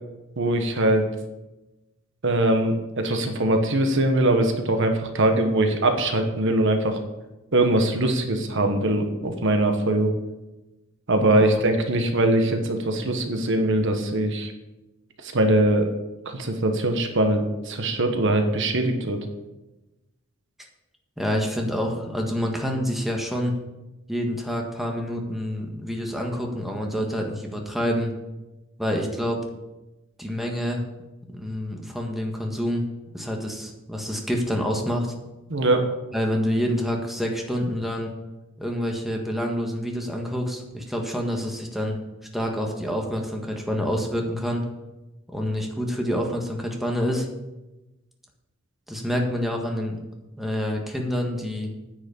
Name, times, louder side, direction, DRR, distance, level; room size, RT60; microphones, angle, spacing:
voice 1, 0.4-1.1 2.2-7.0 7.5-10.1 11.1-14.5 15.2-15.9 16.2-19.2 35.5-35.9, right 1 dB, 60° right, 5 dB, 1.3 m, -22 dB
voice 2, 21.2-23.6 24.1-28.1 28.8-29.4 30.2-30.8 31.3-32.8 33.1-35.1 36.1-38.1 38.6-42.0 42.3-44.6 45.3-47.3 48.9-50.0 50.4-51.7, equal, ahead, 1 dB, 1.6 m, -27 dB
10.0 x 6.3 x 8.5 m, 1.0 s
head